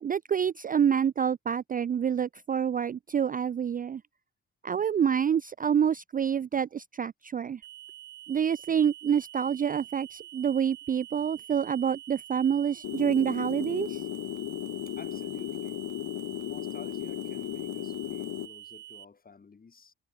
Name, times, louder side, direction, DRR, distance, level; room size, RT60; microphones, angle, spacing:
voice 1, 0.0-4.0 4.6-7.6 8.3-14.0, right 8 dB, 30° right, 0.4 m, -27 dB
sound 1, 7.6-19.0, right 13 dB, 75° right, 1.3 m, -47 dB
sound 2, 12.8-18.5, left 14 dB, 75° left, 1.5 m, -35 dB
voice 2, 15.0-15.8 16.4-19.9, left 5 dB, 30° left, 2.4 m, -50 dB
cardioid pair, 90°, 30 cm